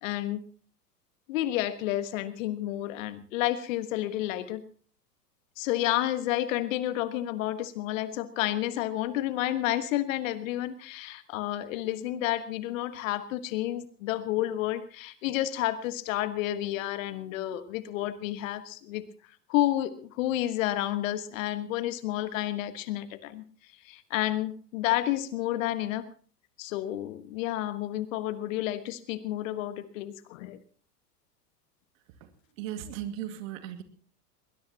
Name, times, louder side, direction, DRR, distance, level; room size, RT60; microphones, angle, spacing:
voice 1, 0.0-0.4 1.3-4.6 5.6-19.0 19.5-23.4 23.8-26.0 26.6-30.6, left 14 dB, 50° left, 12 dB, 1.6 m, -30 dB
voice 2, 32.6-33.8, right 11 dB, 50° right, 9 dB, 2.2 m, -37 dB
21.5 x 20.0 x 2.9 m, 0.41 s
figure-of-eight pair, 90°, 48 cm